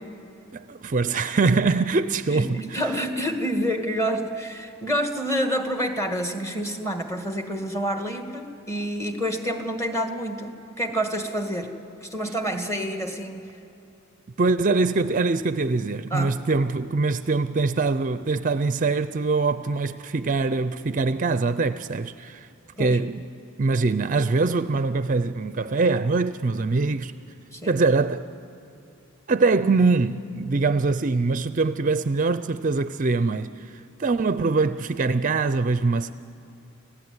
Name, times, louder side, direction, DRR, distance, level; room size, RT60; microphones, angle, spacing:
voice 1, 0.5-2.8 14.4-22.5 22.8-23.2 23.6-27.1 27.7-28.3 29.3-33.5 34.0-36.1, right 3 dB, 40° right, 0.5 m, -23 dB
voice 2, 2.3-13.5 16.1-16.5 22.8-23.0 27.5-27.7, equal, 15° left, 1.6 m, -28 dB
29.0 x 15.5 x 9.7 m
head